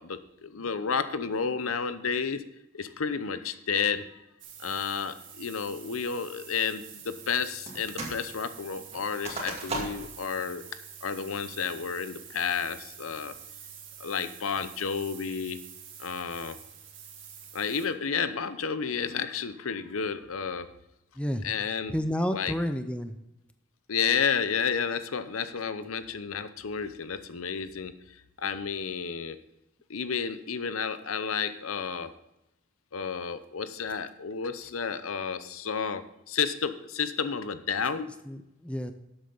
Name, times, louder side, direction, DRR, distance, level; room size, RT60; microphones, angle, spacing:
voice 1, 0.0-2.4 2.7-4.2 4.6-10.6 11.0-13.3 14.0-15.6 16.0-16.6 17.5-20.7 21.4-21.9 22.3-22.5 23.9-29.4 29.9-32.1 32.9-38.1, left 6 dB, 90° left, 12 dB, 0.8 m, -31 dB
sound 1, 4.4-17.9, right 8 dB, 60° right, 1.9 m, -47 dB
sound 2, 7.7-8.2 8.5-10.2 10.7-10.8 11.3-11.7 12.2-12.6, right 2 dB, 30° right, 2.2 m, -37 dB
voice 2, 21.2-21.5 21.9-23.1 38.3-38.9, equal, 5° left, 8 dB, 0.6 m, -30 dB
12.0 x 8.1 x 4.0 m, 0.88 s
head